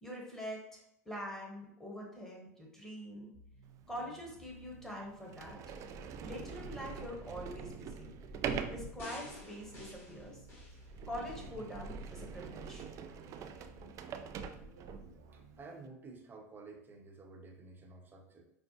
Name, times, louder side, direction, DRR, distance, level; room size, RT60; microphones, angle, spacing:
voice 1, 0.0-3.3 3.9-5.6 6.2-8.1 8.7-10.4 11.1-12.9, equal, 5° left, -1 dB, 1.2 m, -44 dB
sound 1, 3.3-15.6, right 3 dB, 75° right, 0.7 m, -57 dB
Sliding door, 3.9-4.0 4.7-4.8 5.3-15.2, right 6 dB, 40° right, 0.3 m, -44 dB
sound 2, 9.0-11.5 12.0-12.1, left 2 dB, 25° left, 1.4 m, -52 dB
voice 2, 15.3-18.5, right 3 dB, 25° right, 2 dB, 0.8 m, -52 dB
5.3 x 2.1 x 2.9 m, 0.79 s
hypercardioid pair, 90°, 9 cm